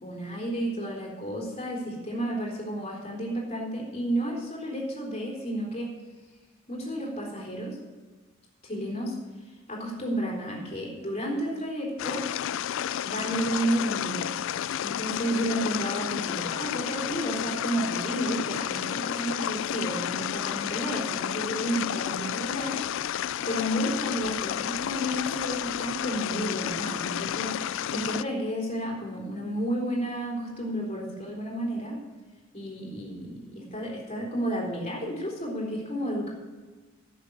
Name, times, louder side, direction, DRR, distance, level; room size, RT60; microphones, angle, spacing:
voice 1, 0.0-5.9 6.7-7.8 8.6-9.1 9.7-12.2 13.0-14.4 14.8-22.8 23.5-32.0 32.5-36.3, equal, 30° left, -3 dB, 3.8 m, -31 dB
sound 1, 12.0-28.2, left 10 dB, 65° left, 0.3 m, -31 dB
11.5 x 6.8 x 9.6 m, 1.3 s
head